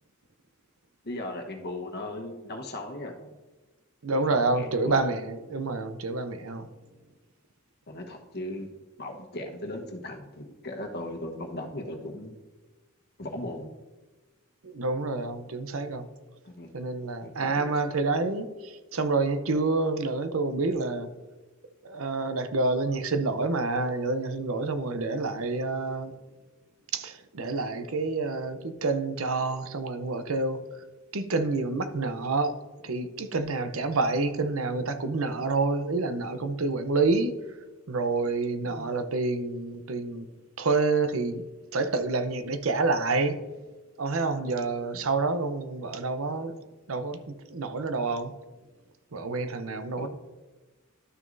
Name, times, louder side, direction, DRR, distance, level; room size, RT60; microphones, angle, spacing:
voice 1, 1.0-3.3 4.3-5.0 7.9-8.7 9.0-12.4 13.2-13.7 16.4-16.7 17.2-17.7 38.6-38.8 50.0-50.1, left 1 dB, 50° left, 3 dB, 1.2 m, -37 dB
voice 2, 4.0-6.7 14.6-16.1 16.7-21.1 21.8-26.1 26.9-30.6 31.1-32.6 32.8-37.4 37.9-40.3 40.6-41.4 41.7-43.4 44.0-46.6 46.9-47.2 47.5-48.3 49.1-50.1, right 3 dB, 65° right, 10 dB, 0.7 m, -28 dB
12.0 x 6.2 x 2.6 m, 1.2 s
head